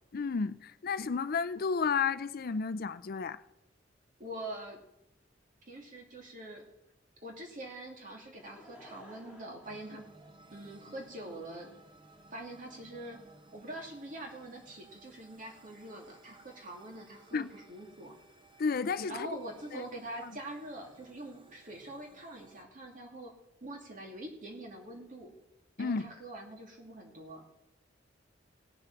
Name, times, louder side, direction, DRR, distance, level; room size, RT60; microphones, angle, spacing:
voice 1, 0.1-3.4 17.3-17.5 18.6-19.3 19.7-19.8 20.2-20.3 25.8-26.1, left 5 dB, 55° left, 0.5 m, -32 dB
voice 2, 4.2-4.8 5.7-6.6 7.2-10.0 10.5-11.7 12.3-13.2 13.5-18.1 19.1-23.3 23.6-25.3 25.8-27.4, right 1 dB, 45° right, 2.6 m, -44 dB
Laughter / Crowd, 8.2-10.8 11.5-11.6, equal, 10° right, 3.2 m, -55 dB
sound 1, 9.6-22.6, right 2 dB, 25° right, 1.0 m, -59 dB
17.5 x 6.9 x 5.9 m
head